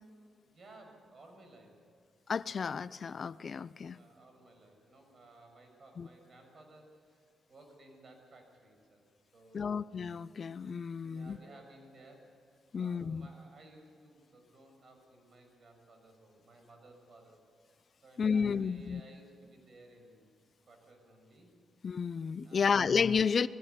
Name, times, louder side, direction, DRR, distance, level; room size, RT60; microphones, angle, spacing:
voice 1, 0.4-1.9 3.9-9.1 9.3-9.9 11.0-17.4 18.0-20.3 20.7-21.5 22.4-22.9, right 2 dB, 50° right, 3 dB, 6.4 m, -58 dB
voice 2, 2.3-4.0 6.0-6.1 9.5-11.4 12.7-13.3 18.2-19.0 21.8-23.5, left 6 dB, 55° left, 17 dB, 0.5 m, -31 dB
21.5 x 16.5 x 8.3 m, 2.3 s
cardioid pair, 65°, 0 cm